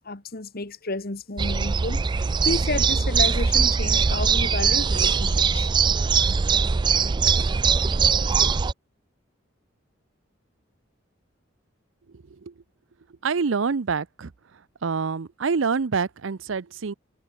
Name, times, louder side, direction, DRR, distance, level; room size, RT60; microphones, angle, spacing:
voice 1, 0.0-5.7, left 2 dB, 50° left, 1.7 m, -31 dB
sound 1, 1.4-8.7, right 5 dB, 25° right, 0.3 m, -21 dB
voice 2, 12.1-12.5 13.2-14.3 14.8-16.9, right 5 dB, 85° right, 0.6 m, -26 dB
head